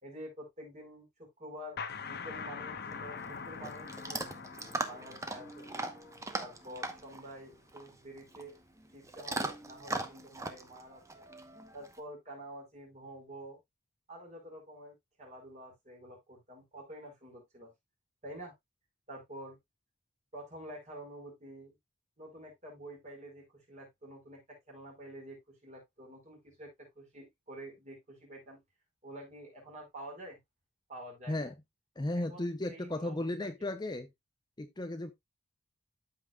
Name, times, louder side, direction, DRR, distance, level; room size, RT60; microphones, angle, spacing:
voice 1, 0.0-4.2 4.8-5.9 6.4-8.6 8.9-11.3 11.7-13.6 14.1-17.7 18.2-18.5 19.1-19.6 20.3-21.7 22.2-28.6 29.0-30.4 30.9-31.5 32.1-33.7, right 1 dB, 35° right, 4.8 m, -48 dB
sound 1, 1.8-7.2, left 5 dB, 50° left, 1.0 m, -44 dB
Chewing mastication / Dog, 2.9-12.0, right 2 dB, 15° right, 0.9 m, -40 dB
voice 2, 32.0-34.1 34.6-35.1, left 1 dB, 20° left, 0.6 m, -35 dB
13.5 x 5.7 x 2.3 m
head